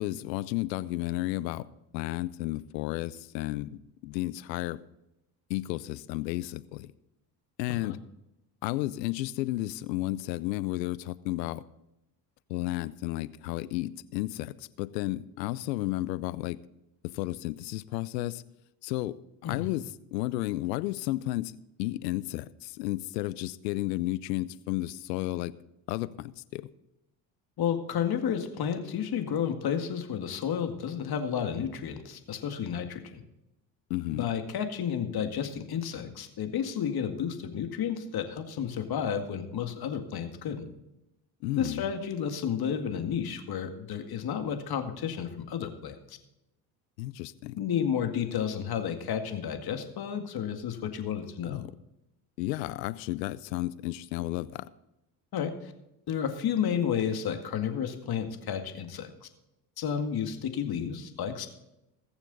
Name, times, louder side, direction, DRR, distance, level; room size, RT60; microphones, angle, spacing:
voice 1, 0.0-1.7 1.9-4.8 5.5-6.9 7.6-8.0 8.6-11.6 12.5-16.6 17.0-18.4 18.8-19.2 19.4-19.8 20.1-21.5 21.8-25.5 25.9-26.7 33.9-34.3 41.4-41.9 47.0-47.6 51.4-51.7 52.4-54.7, left 17 dB, 80° left, 18 dB, 0.7 m, -32 dB
voice 2, 27.6-33.2 34.1-40.7 41.6-46.2 47.6-51.6 55.3-55.7 56.1-59.3 59.8-61.5, left 8 dB, 45° left, 6 dB, 2.0 m, -31 dB
20.5 x 7.2 x 4.0 m, 0.89 s
hypercardioid pair, 70°, 49 cm